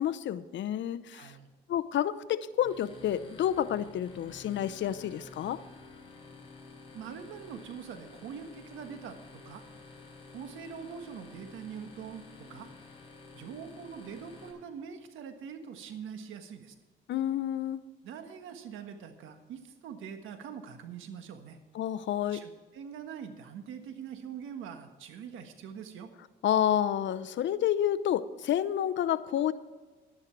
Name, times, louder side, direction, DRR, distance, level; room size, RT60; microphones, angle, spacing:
voice 1, 0.0-1.4 1.7-5.6 17.1-17.8 21.7-22.4 26.4-29.5, left 10 dB, 70° left, 13 dB, 0.7 m, -29 dB
voice 2, 1.1-1.5 6.9-9.6 10.3-12.7 13.3-16.8 18.0-21.6 22.3-26.1, right 7 dB, 90° right, 7 dB, 1.5 m, -43 dB
sound 1, 2.6-14.5, left 3 dB, 25° left, 4.5 m, -51 dB
11.5 x 10.5 x 4.6 m, 1.3 s
cardioid pair, 90°, 20 cm